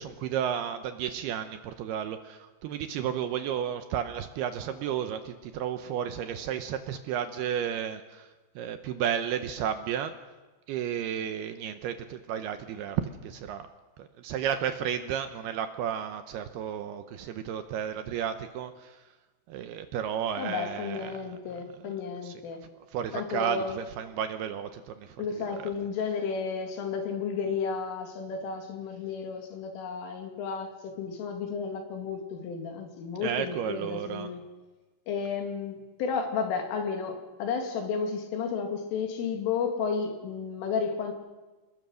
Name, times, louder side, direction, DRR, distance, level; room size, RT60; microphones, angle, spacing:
voice 1, 0.0-8.3 8.6-10.2 10.7-13.7 14.0-19.0 19.5-21.4 22.2-22.5 22.9-25.7 33.2-34.3, right 9 dB, 85° right, 9 dB, 2.3 m, -33 dB
voice 2, 20.4-22.6 23.1-23.8 25.2-34.4 35.1-41.1, left 5 dB, 80° left, 4 dB, 5.0 m, -32 dB
27.5 x 21.0 x 6.4 m, 1.2 s
omnidirectional pair, 5.7 m